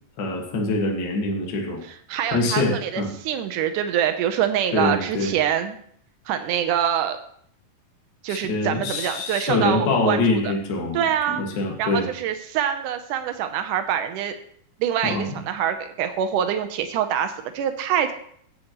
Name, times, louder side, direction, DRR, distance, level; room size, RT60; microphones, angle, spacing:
voice 1, 0.2-1.8 2.3-3.1 4.7-5.3 8.3-12.1 15.0-15.4, left 2 dB, 50° left, 1 dB, 1.3 m, -24 dB
voice 2, 2.1-5.8 6.3-7.2 8.2-10.5 10.9-11.4 11.8-14.4 14.8-18.1, right 9 dB, 80° right, 8 dB, 1.8 m, -25 dB
16.0 x 7.5 x 3.0 m, 0.63 s
omnidirectional pair, 4.5 m